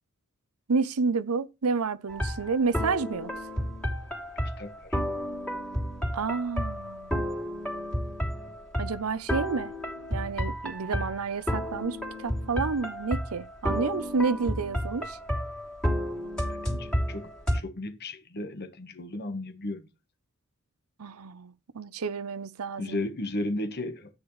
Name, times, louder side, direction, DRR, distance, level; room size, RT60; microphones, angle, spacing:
voice 1, 0.7-3.3 6.1-7.1 8.8-9.7 10.1-15.2 21.0-23.0, right 4 dB, 85° right, 0.7 m, -30 dB
sound 1, 2.1-17.6, equal, 5° left, 3.2 m, -31 dB
voice 2, 4.6-5.0 16.7-19.8 22.8-24.1, left 1 dB, 50° left, 1.3 m, -34 dB
13.5 x 8.9 x 3.2 m
head